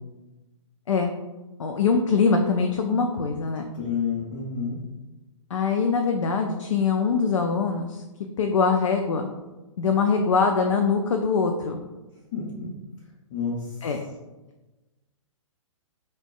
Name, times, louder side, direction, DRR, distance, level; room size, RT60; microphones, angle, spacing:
voice 1, 1.6-3.7 5.5-8.0 8.4-9.3 9.8-11.8 13.8-14.0, left 5 dB, 65° left, 4 dB, 0.4 m, -23 dB
voice 2, 3.7-4.8 12.3-12.7 13.3-13.6, left 6 dB, 40° left, -7 dB, 0.8 m, -29 dB
5.8 x 2.2 x 2.3 m, 1.1 s
figure-of-eight pair, 120°, 17 cm